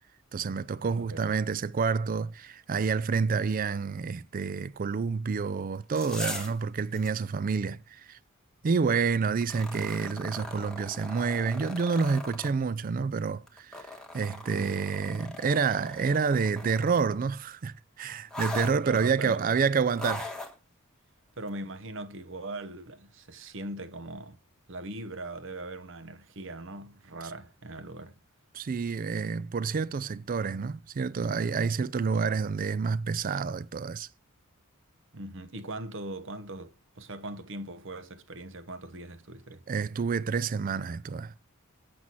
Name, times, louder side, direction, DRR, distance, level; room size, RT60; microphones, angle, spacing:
voice 1, 0.3-8.2 8.6-13.9 14.1-20.3 28.5-34.1 39.7-41.3, right 5 dB, 40° right, 0.4 m, -28 dB
voice 2, 0.9-1.3 18.8-19.5 21.4-24.4 24.7-28.2 35.1-39.6, right 2 dB, 60° right, 1.0 m, -40 dB
sound 1, 5.8-6.6 7.0-7.1 9.4-12.5 13.5-17.1 18.3-18.8 19.9-20.5 21.5-21.6, left 2 dB, 5° left, 1.3 m, -40 dB
7.8 x 6.2 x 4.0 m
head